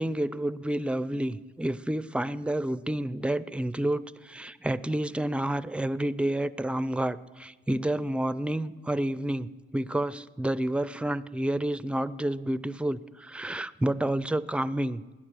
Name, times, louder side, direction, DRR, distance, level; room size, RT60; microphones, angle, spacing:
voice 1, 0.0-15.0, right 1 dB, 5° right, 17 dB, 0.5 m, -29 dB
18.5 x 10.0 x 6.3 m, 1.3 s
cardioid pair, 90°, 20 cm